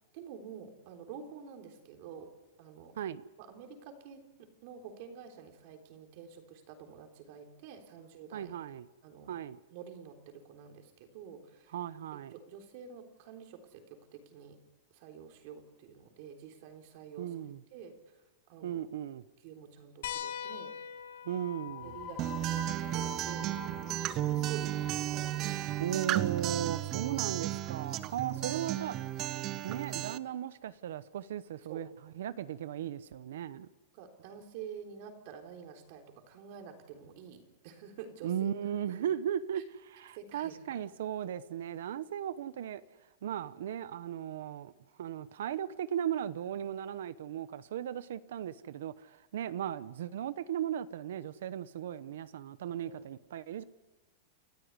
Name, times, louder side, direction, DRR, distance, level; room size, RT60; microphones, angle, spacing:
voice 1, 0.1-2.3 2.6-2.9 3.4-8.5 9.0-9.4 9.7-11.7 12.3-14.6 14.9-17.4 17.7-18.2 18.5-18.8 19.4-20.7 21.8-26.0 26.5-26.6 27.7-27.9 28.5-28.6 31.7-31.8 33.9-38.6 39.0-39.1 39.5-39.6 40.1-40.8 52.9-53.1, right 7 dB, 40° right, 3.7 m, -49 dB
voice 2, 8.3-8.9 9.3-9.6 11.7-12.3 17.2-17.6 18.6-19.2 21.2-22.0 25.8-28.9 29.6-31.9 32.2-33.7 38.2-42.8 43.2-44.7 45.0-53.6, right 10 dB, 75° right, 0.9 m, -37 dB
sound 1, 20.0-25.1 26.6-26.7 28.4-28.5, left 9 dB, 65° left, 2.2 m, -44 dB
sound 2, 21.7-29.1, left 9 dB, 15° left, 0.8 m, -50 dB
Acoustic guitar, 22.2-30.2, right 14 dB, 25° right, 0.7 m, -34 dB
29.5 x 13.5 x 9.6 m
supercardioid pair, 175°, 0 cm